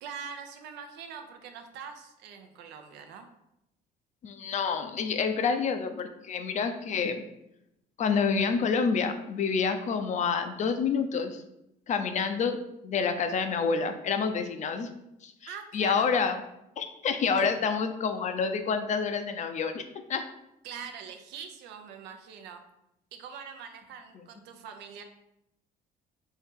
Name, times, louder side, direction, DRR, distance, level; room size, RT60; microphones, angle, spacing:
voice 1, 0.0-3.3 15.5-16.1 17.4-17.5 20.6-22.6 23.1-25.0, right 7 dB, 90° right, 6 dB, 0.6 m, -43 dB
voice 2, 4.2-7.2 8.0-11.4 11.9-14.9 15.2-16.4 16.8-19.8 20.1-20.2, left 5 dB, 45° left, 7 dB, 0.5 m, -28 dB
4.5 x 2.8 x 3.6 m, 0.84 s
cardioid pair, 110°, 17 cm